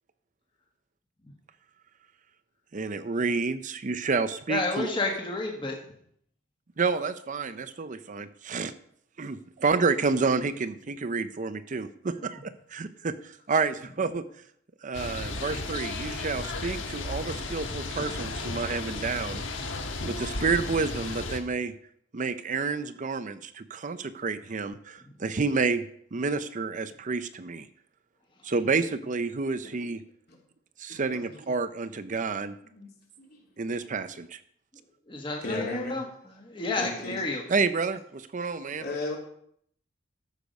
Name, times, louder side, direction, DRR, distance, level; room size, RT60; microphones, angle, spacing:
voice 1, 2.7-5.0 6.8-8.7 9.2-14.2 14.8-19.7 20.0-21.7 22.1-25.8 26.1-27.7 28.4-30.0 30.8-32.6 33.6-34.4 37.5-38.8, right 4 dB, 40° right, 12 dB, 0.5 m, -29 dB
voice 2, 4.5-5.8 35.1-36.0 36.4-37.4, left 3 dB, 25° left, 0 dB, 1.5 m, -30 dB
sound 1, 14.9-21.4, left 3 dB, 70° left, 1.4 m, -34 dB
voice 3, 30.9-31.3 32.7-32.9 33.2-33.4 35.4-36.0 36.8-37.2 38.8-39.2, left 2 dB, 50° left, -1 dB, 3.1 m, -35 dB
13.0 x 6.7 x 5.2 m, 0.68 s
head